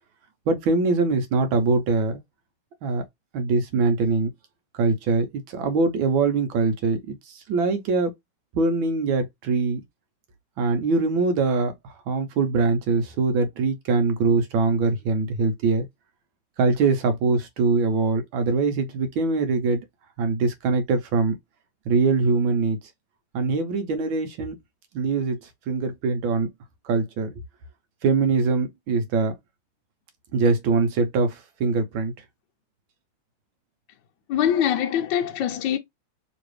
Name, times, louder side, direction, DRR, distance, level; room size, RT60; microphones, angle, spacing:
voice 1, 0.5-2.2 2.8-3.0 3.3-4.3 4.8-8.1 8.5-9.8 10.6-11.7 12.1-15.9 16.6-19.8 20.2-21.4 21.9-22.8 23.3-24.5 24.9-25.4 25.7-26.5 26.8-27.3 28.0-29.3 30.3-32.1, right 4 dB, 70° right, 1.5 m, -23 dB
voice 2, 34.3-35.8, left 9 dB, 70° left, 1.3 m, -23 dB
3.4 x 3.1 x 3.1 m
omnidirectional pair, 2.4 m